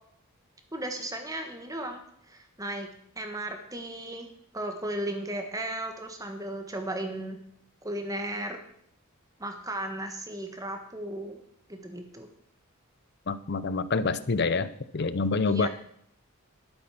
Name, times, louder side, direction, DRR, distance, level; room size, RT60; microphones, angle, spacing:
voice 1, 0.7-2.9 3.1-4.3 4.5-7.4 7.8-8.6 9.4-11.4 11.7-12.3 15.4-15.7, right 1 dB, 15° right, 5 dB, 1.5 m, -35 dB
voice 2, 13.3-15.7, left 4 dB, 50° left, 15 dB, 0.6 m, -27 dB
11.5 x 8.5 x 5.8 m, 0.68 s
head